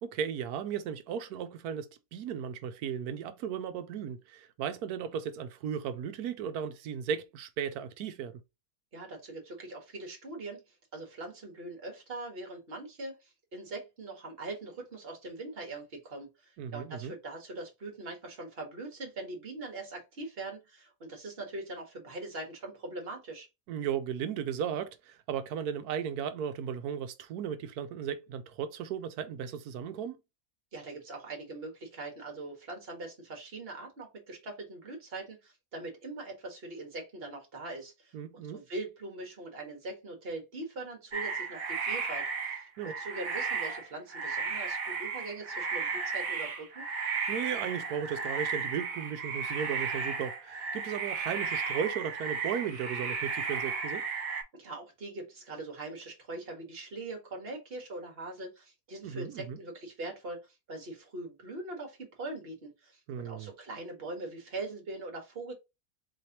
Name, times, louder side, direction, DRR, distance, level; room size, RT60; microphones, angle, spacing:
voice 1, 0.0-8.4 16.6-17.1 23.7-30.2 38.1-38.6 42.8-42.9 47.3-54.1 59.0-59.6 63.1-63.5, right 8 dB, 80° right, 1.1 m, -36 dB
voice 2, 8.9-23.5 30.7-46.8 54.5-65.5, right 2 dB, 40° right, 1.5 m, -42 dB
sound 1, 41.1-54.4, right 5 dB, 65° right, 1.5 m, -34 dB
4.3 x 3.2 x 2.8 m
omnidirectional pair, 1.6 m